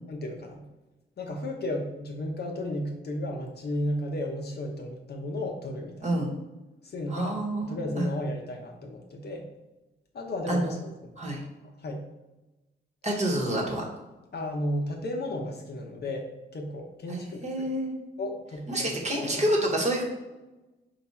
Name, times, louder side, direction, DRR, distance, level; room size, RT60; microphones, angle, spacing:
voice 1, 0.1-0.6 1.2-6.1 6.8-9.5 10.1-11.1 11.8-12.0 14.3-17.7 18.2-19.4, left 1 dB, 55° left, 2 dB, 0.7 m, -34 dB
voice 2, 7.1-8.1 10.5-10.8 11.2-11.4 13.0-13.9 17.1-17.9 18.7-20.0, right 1 dB, 35° right, 0 dB, 1.1 m, -28 dB
4.7 x 2.3 x 4.2 m, 1.1 s
cardioid pair, 85°, 20 cm